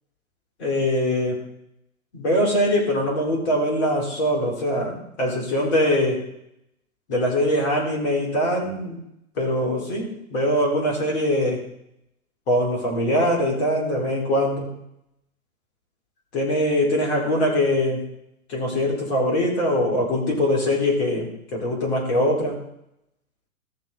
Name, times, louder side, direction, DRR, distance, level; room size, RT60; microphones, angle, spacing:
voice 1, 0.6-1.4 2.1-6.2 7.1-9.0 9.4-11.6 12.5-14.7 16.3-18.0 18.5-22.6, equal, 45° left, -2 dB, 4.3 m, -22 dB
14.5 x 7.1 x 3.9 m, 0.79 s
figure-of-eight pair, 115°, 44 cm